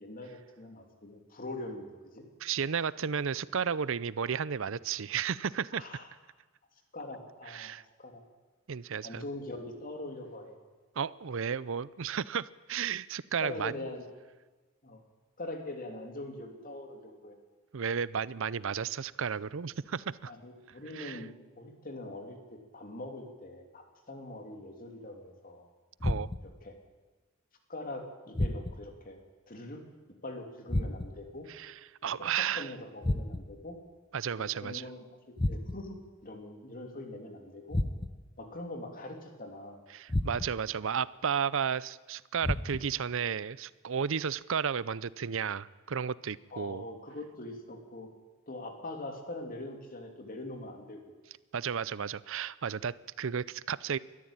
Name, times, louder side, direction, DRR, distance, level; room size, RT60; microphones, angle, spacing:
voice 1, 0.0-1.9 2.1-2.2 5.7-6.1 6.9-7.7 8.0-8.2 9.0-10.6 13.4-14.0 14.8-15.0 15.4-17.4 20.3-25.7 26.6-26.8 27.7-29.2 29.5-29.8 30.2-31.5 32.0-33.8 34.4-35.0 35.5-37.8 38.4-39.8 46.5-48.1 48.5-51.0, left 2 dB, 45° left, 4 dB, 3.1 m, -43 dB
voice 2, 2.4-5.8 7.5-7.8 8.7-9.2 11.0-13.7 17.7-20.3 20.9-21.2 26.0-26.3 31.6-31.7 32.0-32.7 34.1-34.8 39.9-46.8 51.5-54.0, right 7 dB, 70° right, 19 dB, 0.6 m, -33 dB
sound 1, 26.0-26.6 28.3-29.0 30.7-31.3 33.0-33.7 35.4-36.0 37.7-38.3 40.1-40.7 42.4-43.0, left 1 dB, 25° left, 0.7 m, -32 dB
21.5 x 13.5 x 9.0 m, 1.3 s
head